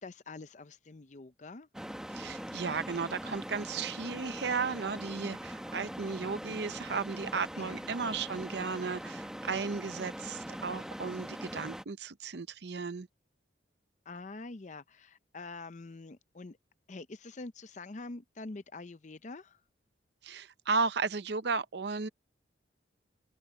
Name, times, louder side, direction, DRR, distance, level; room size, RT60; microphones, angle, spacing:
voice 1, 0.0-1.7 7.5-7.9 14.1-16.6 16.9-19.6, left 3 dB, 40° left, 0.6 m, -45 dB
sound 1, 1.7-11.8, equal, 5° right, 1.2 m, -42 dB
voice 2, 2.1-13.1 20.2-22.1, right 5 dB, 60° right, 0.7 m, -35 dB
open air
head